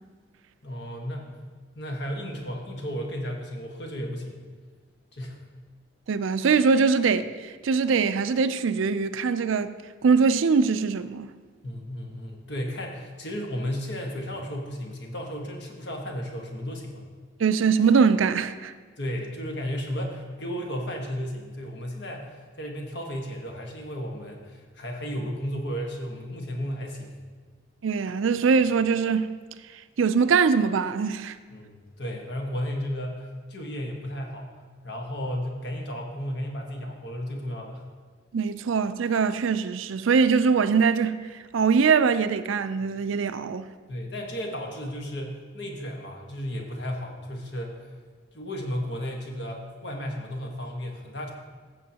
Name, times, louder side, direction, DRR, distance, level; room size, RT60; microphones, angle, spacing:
voice 1, 0.6-1.3 1.7-4.4 5.1-5.4 11.6-17.0 19.0-27.1 31.5-34.5 34.8-37.8 43.9-47.9 48.3-51.3, equal, 60° left, 1.4 m, -34 dB
voice 2, 6.1-7.3 7.6-9.7 10.0-11.3 17.4-18.7 27.8-29.4 30.0-31.4 38.3-41.2 41.5-43.7, right 5 dB, 80° right, 0.4 m, -22 dB
14.5 x 7.0 x 2.9 m
head